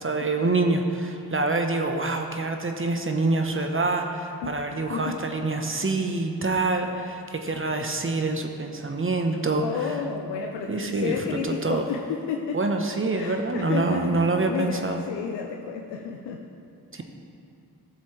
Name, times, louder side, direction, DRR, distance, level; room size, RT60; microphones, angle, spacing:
voice 1, 0.0-9.9 10.7-11.8 12.5-15.0 16.9-17.0, right 3 dB, 30° right, 4 dB, 1.0 m, -26 dB
voice 2, 4.4-5.2 9.6-12.6 13.2-16.5 17.0-17.1, left 6 dB, 85° left, 1 dB, 0.7 m, -32 dB
13.5 x 7.1 x 3.3 m, 2.5 s
supercardioid pair, 50°, 41 cm